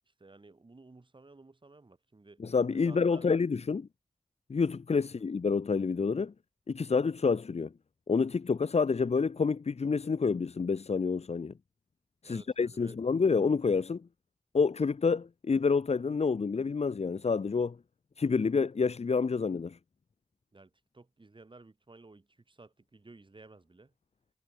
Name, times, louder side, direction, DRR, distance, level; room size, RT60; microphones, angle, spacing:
voice 1, 0.1-2.4 2.8-3.3 5.0-5.3 12.2-13.0 20.5-23.9, right 3 dB, 45° right, 6.5 m, -55 dB
voice 2, 2.4-3.9 4.5-6.3 6.7-7.7 8.1-11.5 12.2-14.0 14.5-17.8 18.2-19.8, left 5 dB, 60° left, 0.8 m, -28 dB
wide cardioid pair, 85°, 12 cm